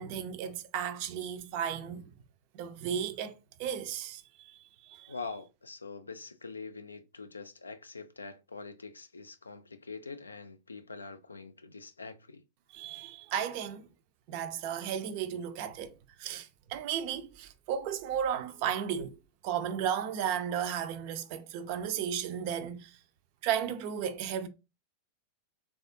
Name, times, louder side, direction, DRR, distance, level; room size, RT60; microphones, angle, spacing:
voice 1, 0.0-2.0 2.5-3.3 3.6-5.1 12.7-13.9 14.3-19.2 19.4-23.0 23.4-24.5, right 8 dB, 45° right, 0.4 m, -34 dB
voice 2, 5.1-12.4, left 4 dB, 75° left, 0.4 m, -44 dB
3.3 x 2.3 x 2.6 m
figure-of-eight pair, 90°, 0 cm